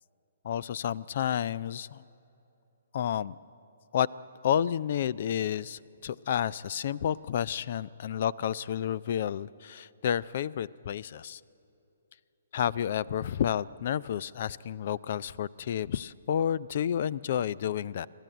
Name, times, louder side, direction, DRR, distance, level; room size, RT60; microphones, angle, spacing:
voice 1, 0.4-2.0 2.9-3.4 3.9-4.1 4.4-11.4 12.5-18.1, left 9 dB, 50° left, 21 dB, 0.4 m, -30 dB
25.5 x 12.5 x 8.9 m, 2.9 s
figure-of-eight pair, 130°, 0 cm